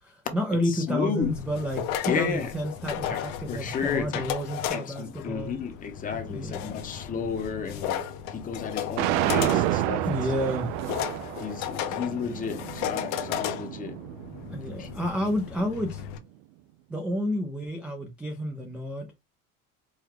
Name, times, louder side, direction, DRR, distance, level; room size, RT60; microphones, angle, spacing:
voice 1, 0.0-5.5 6.3-6.8 10.0-10.7 14.5-16.0 16.9-19.1, equal, 5° right, 0.3 m, -30 dB
voice 2, 0.7-1.3 2.0-2.5 3.0-3.2 3.5-4.2 4.7-8.0 8.3-10.0 11.4-14.0 14.8-14.9, left 6 dB, 25° left, 0.7 m, -32 dB
sound 1, 1.2-16.2, left 10 dB, 65° left, 0.7 m, -35 dB
sound 2, 9.0-15.1, right 13 dB, 80° right, 0.5 m, -30 dB
4.7 x 2.2 x 3.5 m
cardioid pair, 155°, 35 cm